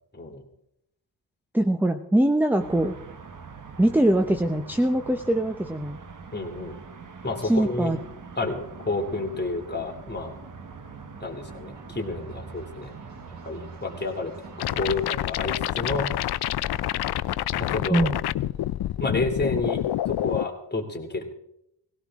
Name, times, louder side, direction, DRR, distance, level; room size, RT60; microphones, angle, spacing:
voice 1, 0.1-0.5 6.3-6.8 7.2-7.9 8.4-10.3 11.2-12.9 13.4-14.3 14.7-16.1 17.7-18.1 19.0-19.8 20.1-21.2, left 2 dB, 25° left, 2 dB, 2.8 m, -30 dB
voice 2, 1.5-2.9 3.8-6.0 7.4-8.0 17.9-18.1, right 1 dB, 5° right, 7 dB, 0.8 m, -22 dB
sound 1, 2.6-15.1, right 5 dB, 45° right, 1.3 m, -43 dB
sound 2, 7.1-19.4, right 1 dB, 70° right, 7.9 m, -53 dB
sound 3, 14.6-20.4, left 13 dB, 65° left, 0.5 m, -27 dB
19.0 x 17.0 x 3.7 m, 0.78 s
cardioid pair, 100°, 43 cm